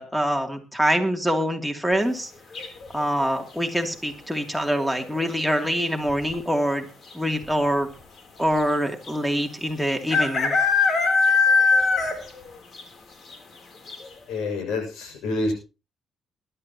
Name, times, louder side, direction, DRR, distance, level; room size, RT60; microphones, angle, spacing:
voice 1, 0.0-2.3 2.9-6.9 7.1-7.9 8.4-10.6, equal, ahead, 4 dB, 2.9 m, -24 dB
sound 1, 2.5-3.0 4.8-5.2 5.5-5.6 5.8-6.3 7.1-7.2 7.4-7.5 9.1-9.2 10.1-12.4 12.7-12.8 13.3-13.4 13.9-14.0, left 4 dB, 55° left, 3.6 m, -21 dB
voice 2, 14.3-15.5, left 2 dB, 85° left, 4 dB, 6.8 m, -27 dB
21.0 x 11.5 x 3.0 m, 0.31 s
cardioid pair, 90°, 0 cm